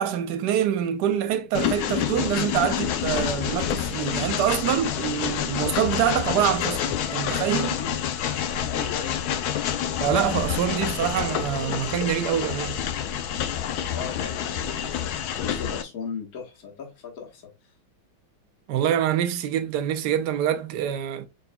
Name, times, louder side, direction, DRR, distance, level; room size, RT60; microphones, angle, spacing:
voice 1, 0.0-7.8 10.0-12.8 18.7-21.3, right 10 dB, 70° right, 1.0 m, -25 dB
Train, 1.5-15.8, left 9 dB, 85° left, 0.8 m, -28 dB
voice 2, 8.6-9.3 13.9-17.4, left 6 dB, 45° left, 1.7 m, -37 dB
4.7 x 3.9 x 2.2 m
omnidirectional pair, 2.2 m